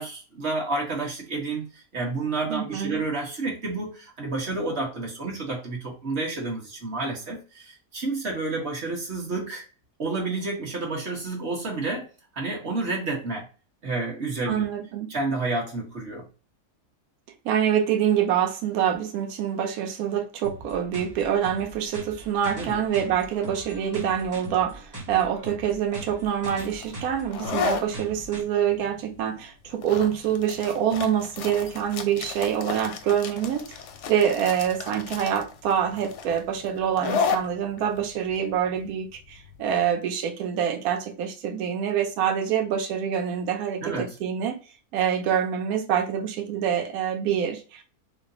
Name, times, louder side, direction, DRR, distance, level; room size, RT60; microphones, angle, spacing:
voice 1, 0.0-9.6 10.0-12.1 12.3-13.5 13.8-14.7 15.1-16.3 22.6-22.8 43.8-44.1, right 3 dB, 45° right, 1.4 m, -30 dB
voice 2, 2.5-3.0 14.5-15.1 17.4-33.8 34.1-44.6 44.9-47.8, right 9 dB, 75° right, 1.1 m, -26 dB
sound 1, 20.4-28.4, right 1 dB, 15° right, 0.7 m, -41 dB
sound 2, 26.4-39.8, left 6 dB, 65° left, 0.8 m, -33 dB
3.2 x 2.2 x 3.7 m
omnidirectional pair, 1.6 m